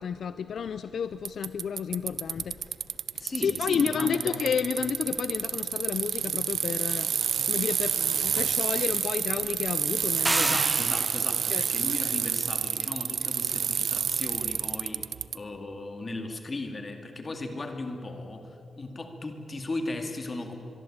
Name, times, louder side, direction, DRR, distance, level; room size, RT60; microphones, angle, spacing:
voice 1, 0.0-2.6 3.4-7.1 7.5-10.5 11.5-11.6, left 7 dB, 60° left, 13 dB, 0.6 m, -31 dB
Bicycle, 1.3-15.4, right 8 dB, 65° right, 0.5 m, -29 dB
voice 2, 3.2-4.4 10.4-20.6, left 2 dB, 25° left, 5 dB, 2.4 m, -37 dB
sound 1, 10.3-11.5, right 1 dB, 10° right, 0.5 m, -29 dB
24.0 x 22.5 x 8.8 m, 2.8 s
wide cardioid pair, 180°, 0 cm